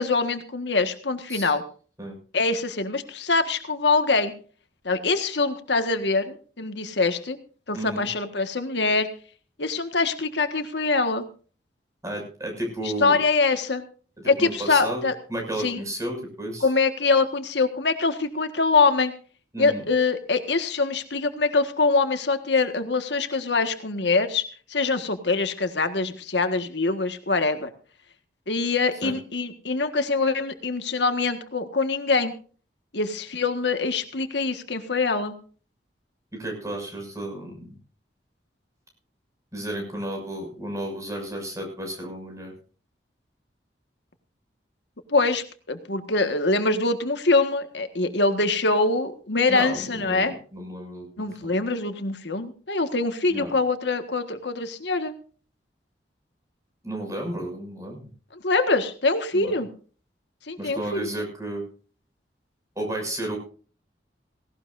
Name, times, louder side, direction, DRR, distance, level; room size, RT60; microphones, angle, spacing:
voice 1, 0.0-1.6 2.3-4.3 4.8-7.4 7.7-9.1 9.6-11.2 12.8-13.8 14.2-15.2 15.6-15.8 16.6-19.1 19.6-24.4 24.7-27.7 28.5-32.3 32.9-35.3 45.1-50.4 51.2-55.1 58.4-59.7 60.5-61.1, left 3 dB, 80° left, 8 dB, 1.6 m, -24 dB
voice 2, 7.7-8.1 12.0-13.2 14.4-15.0 15.3-16.7 19.5-19.8 29.0-29.1 36.4-37.7 39.5-42.5 49.5-51.3 53.3-53.5 56.8-58.0 59.3-59.5 60.6-61.6 62.8-63.4, right 1 dB, 20° right, 2 dB, 6.5 m, -32 dB
18.0 x 18.0 x 2.6 m, 0.40 s
head